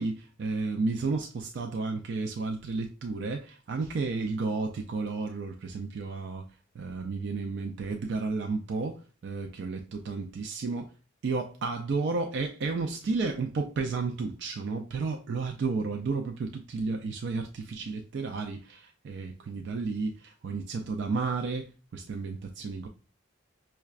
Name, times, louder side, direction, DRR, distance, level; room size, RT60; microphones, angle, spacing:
voice 1, 0.0-6.5 6.7-10.9 11.2-22.9, right 4 dB, 60° right, 0.3 m, -32 dB
5.6 x 2.2 x 2.3 m
head